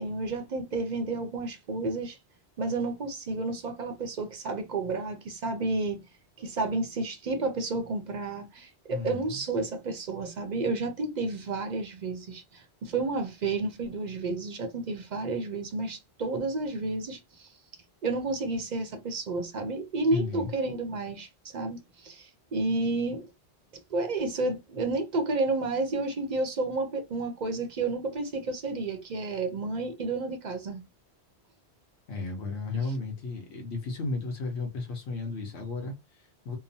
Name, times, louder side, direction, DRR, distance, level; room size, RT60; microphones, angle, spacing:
voice 1, 0.0-2.2 2.6-6.0 6.4-17.5 18.0-23.2 23.9-30.8, right 3 dB, 50° right, 0.6 m, -31 dB
voice 2, 8.9-9.4 20.1-20.5 32.1-36.6, left 3 dB, 75° left, 1.0 m, -34 dB
2.9 x 2.0 x 2.6 m
omnidirectional pair, 1.1 m